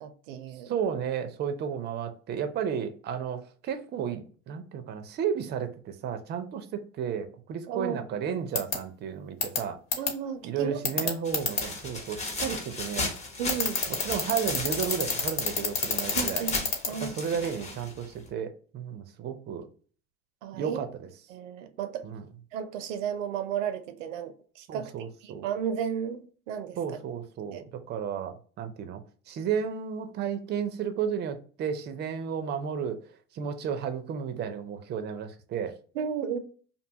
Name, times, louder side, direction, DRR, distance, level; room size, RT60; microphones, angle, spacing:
voice 1, 0.0-0.7 7.7-8.0 10.0-11.1 13.4-13.8 16.2-17.2 20.4-20.8 21.3-22.1 22.5-24.9 25.2-26.8 27.5-27.6 36.0-36.4, right 8 dB, 85° right, 0.5 m, -34 dB
voice 2, 0.6-9.8 10.4-13.1 14.0-16.5 17.0-19.7 20.5-21.1 22.0-22.3 24.7-25.5 26.8-29.0 29.3-33.0 33.3-35.8, right 7 dB, 30° right, 0.4 m, -33 dB
sound 1, 8.6-8.7 9.4-9.6 9.9-10.1 10.8-11.6 13.5-16.9, left 5 dB, 45° left, 1.0 m, -26 dB
sound 2, 11.2-18.3, left 2 dB, 20° left, 0.6 m, -35 dB
2.6 x 2.3 x 2.6 m
supercardioid pair, 105°, 37 cm